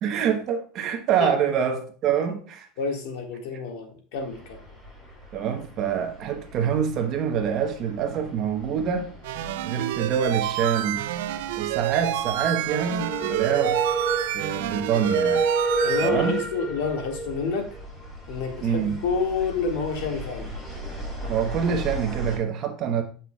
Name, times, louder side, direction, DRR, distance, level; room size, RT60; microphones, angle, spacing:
voice 1, 0.0-2.7 5.3-9.1 9.6-11.0 11.6-13.8 14.3-15.5 16.0-16.4 18.6-19.0 21.3-23.0, right 7 dB, 35° right, 0.9 m, -26 dB
voice 2, 2.8-4.6 15.8-17.7 18.3-20.5, left 5 dB, 70° left, 1.7 m, -29 dB
sound 1, 4.2-22.4, right 3 dB, 10° left, 2.8 m, -32 dB
sound 2, 9.2-16.1, right 13 dB, 85° right, 0.4 m, -28 dB
8.0 x 5.7 x 2.3 m
supercardioid pair, 165°, 0 cm